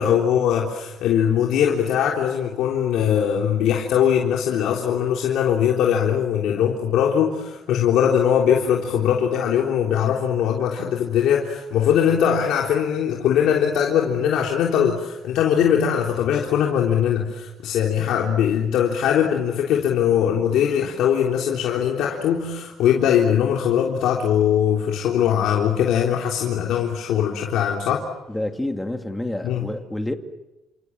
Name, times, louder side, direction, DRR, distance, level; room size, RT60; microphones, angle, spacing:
voice 1, 0.0-28.0 29.4-29.7, left 9 dB, 80° left, 3.7 m, -21 dB
voice 2, 28.3-30.1, left 1 dB, 5° left, 2.4 m, -28 dB
29.5 x 26.5 x 7.5 m
cardioid pair, 130°, 0 cm